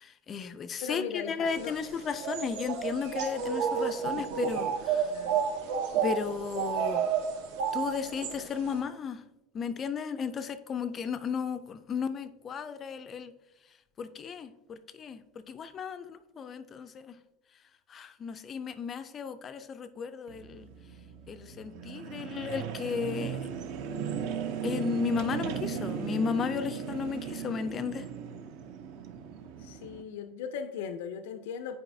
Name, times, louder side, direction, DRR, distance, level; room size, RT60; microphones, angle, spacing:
voice 1, 0.0-5.1 6.0-7.0 7.7-9.2 9.5-13.3 14.0-17.1 17.9-20.7 21.3-23.5 24.6-28.1, left 6 dB, 25° left, 0.3 m, -34 dB
voice 2, 0.8-1.8 5.0-5.5 29.6-31.8, left 7 dB, 85° left, 0.4 m, -38 dB
sound 1, 1.5-8.8, right 7 dB, 80° right, 1.2 m, -31 dB
sound 2, 20.3-30.0, right 8 dB, 55° right, 0.5 m, -37 dB
9.0 x 4.8 x 2.6 m
cardioid pair, 170°, 0 cm